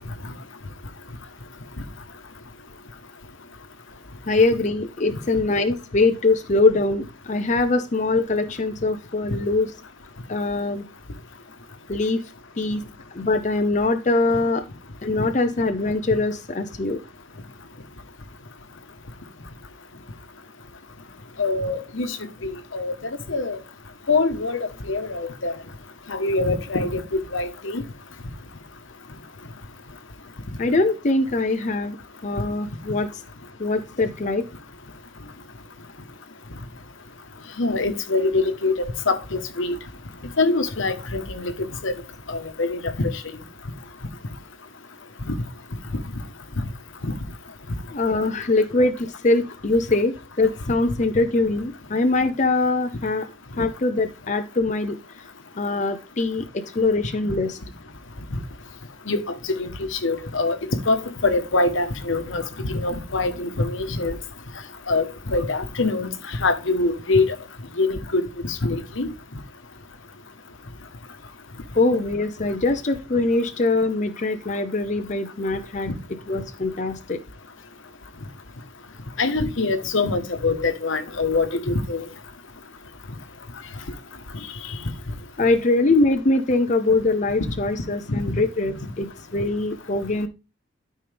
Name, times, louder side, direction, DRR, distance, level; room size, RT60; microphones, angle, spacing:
voice 1, 4.3-9.7 10.3-10.9 11.9-12.2 12.6-12.8 13.1-14.6 15.0-17.0 30.6-32.0 32.2-33.1 33.6-34.4 47.9-53.3 53.6-55.0 55.6-57.6 71.8-75.9 76.3-77.2 85.4-90.3, left 2 dB, 35° left, 0.6 m, -22 dB
voice 2, 21.4-22.2 22.4-23.6 24.1-25.5 26.1-27.8 37.6-39.8 40.4-41.9 42.3-43.1 45.3-45.4 47.0-47.1 59.1-59.2 59.6-60.6 60.9-61.0 61.2-64.2 64.9-66.1 66.4-67.3 67.8-69.1 75.9-76.0 79.2-82.0 88.1-88.2, left 3 dB, 75° left, 1.2 m, -24 dB
12.5 x 5.4 x 3.4 m
head